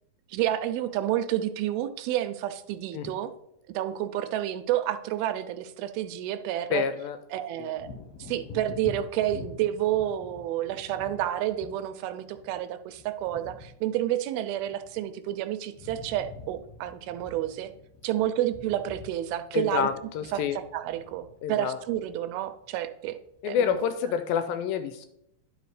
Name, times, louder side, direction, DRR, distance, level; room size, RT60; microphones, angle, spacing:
voice 1, 0.3-3.3 3.7-6.9 7.3-7.9 8.2-17.7 18.0-19.9 20.3-20.4 20.7-23.2 23.4-23.8, right 12 dB, 85° right, 10 dB, 2.4 m, -30 dB
voice 2, 6.7-7.2 7.6-7.7 19.5-20.6 21.4-21.8 23.4-25.1, left 8 dB, 80° left, 10 dB, 2.2 m, -28 dB
Wind / Thunder, 7.7-15.3 15.6-22.8 23.3-23.4, left 4 dB, 60° left, 2.0 m, -47 dB
10.5 x 5.0 x 4.8 m, 0.79 s
omnidirectional pair, 4.4 m